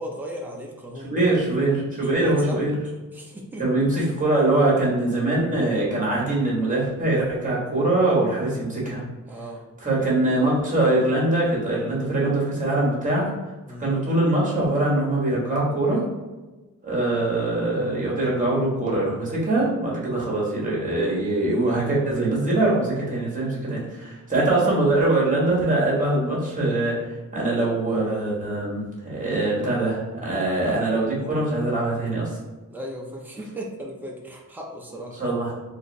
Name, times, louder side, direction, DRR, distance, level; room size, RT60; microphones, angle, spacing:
voice 1, 0.0-1.2 2.0-2.6 3.1-4.1 9.3-9.7 13.7-14.0 32.7-35.2, equal, 5° right, -1 dB, 0.5 m, -37 dB
voice 2, 1.0-2.7 3.6-9.0 9.8-13.3 13.8-16.0 16.8-32.3 35.2-35.5, right 2 dB, 20° right, -5 dB, 1.3 m, -23 dB
4.1 x 2.6 x 3.1 m, 1.2 s
wide cardioid pair, 175°, 34 cm